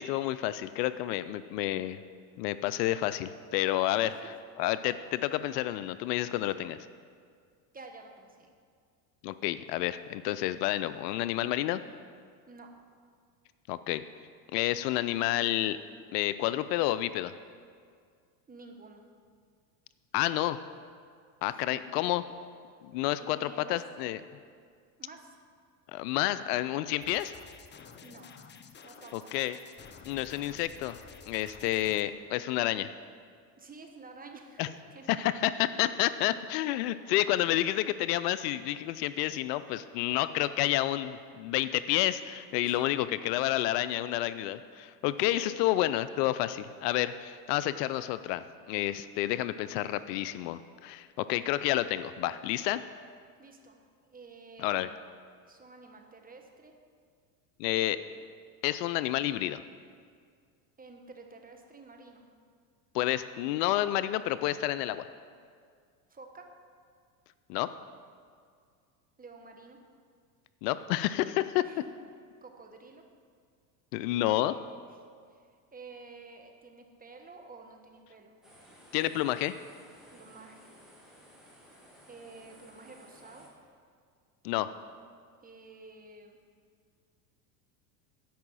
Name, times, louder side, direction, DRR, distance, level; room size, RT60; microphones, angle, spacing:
voice 1, 0.0-2.0 2.4-4.1 4.6-6.8 9.2-11.8 13.7-14.0 14.5-15.8 16.1-17.3 20.1-20.6 21.4-22.2 22.8-24.2 25.9-27.3 29.1-29.6 30.1-31.0 31.3-32.9 34.6-34.7 35.1-52.8 54.6-54.9 57.6-58.0 58.6-59.6 62.9-65.0 67.5-67.7 70.6-71.6 73.9-74.6 78.9-79.5 84.4-84.7, left 14 dB, 70° left, 14 dB, 0.6 m, -29 dB
voice 2, 3.9-4.3 7.7-8.5 12.5-12.7 18.5-19.0 21.5-21.8 23.1-23.8 25.0-25.3 28.0-28.3 28.8-29.4 33.6-35.2 35.8-35.9 42.6-43.3 45.3-45.6 53.4-54.9 55.5-56.7 60.8-62.2 66.1-66.5 69.2-69.8 71.6-72.0 72.4-73.0 75.3-78.4 80.1-80.7 82.1-83.5 85.4-86.4, right 3 dB, 15° right, 3 dB, 1.2 m, -50 dB
sound 1, 27.0-32.0, left 6 dB, 20° left, 0.6 m, -51 dB
sound 2, 78.4-83.5, equal, ahead, 2.4 m, -56 dB
10.5 x 5.5 x 7.4 m, 2.1 s
hypercardioid pair, 95°, 50 cm